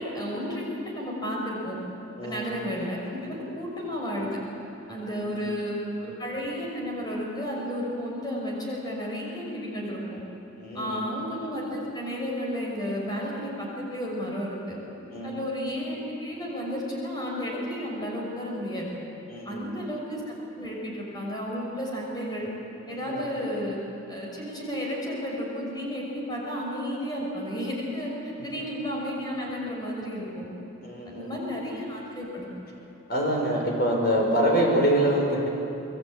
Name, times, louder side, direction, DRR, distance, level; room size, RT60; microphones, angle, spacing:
voice 1, 0.0-1.8 2.2-4.3 4.9-10.2 10.7-14.8 15.2-18.9 19.4-22.5 22.9-23.8 24.1-30.5 31.1-32.5, equal, 20° left, -2 dB, 6.1 m, -32 dB
voice 2, 2.2-2.5 5.2-5.5 10.6-11.1 15.1-15.4 19.3-19.7 22.9-23.2 30.8-31.4 33.1-35.5, right 1 dB, 50° left, 0 dB, 5.6 m, -25 dB
26.0 x 21.5 x 9.0 m, 3.0 s
head